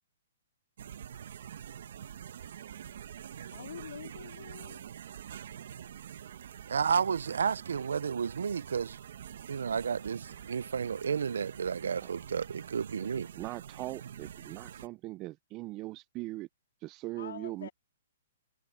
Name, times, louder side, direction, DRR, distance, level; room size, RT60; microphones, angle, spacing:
sound 1, 0.8-14.9, right 9 dB, 60° right, 1.2 m, -46 dB
voice 1, 3.5-4.8 17.1-17.7, left 8 dB, 75° left, 3.0 m, -45 dB
voice 2, 6.7-9.0 9.5-13.3, right 6 dB, 85° right, 0.4 m, -32 dB
voice 3, 13.0-16.5 16.8-17.7, right 19 dB, 25° right, 0.4 m, -41 dB
hypercardioid pair, 160°, 0 cm